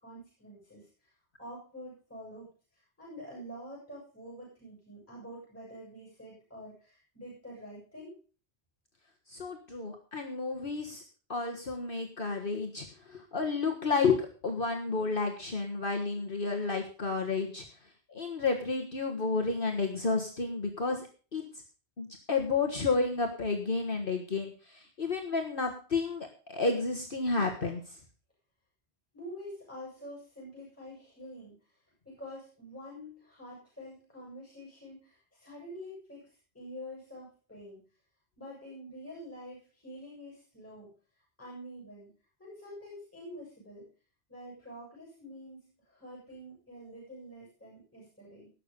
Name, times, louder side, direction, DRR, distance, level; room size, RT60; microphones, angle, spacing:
voice 1, 0.0-1.1 1.4-8.1 29.1-31.6 32.0-37.8 38.4-40.9 41.4-42.1 42.4-43.9 44.3-48.5, equal, 10° left, -5 dB, 7.4 m, -47 dB
voice 2, 9.3-11.0 11.3-17.6 18.1-21.4 22.0-28.0, left 4 dB, 55° left, 2 dB, 1.7 m, -31 dB
18.5 x 6.9 x 5.3 m, 0.38 s
omnidirectional pair, 1.1 m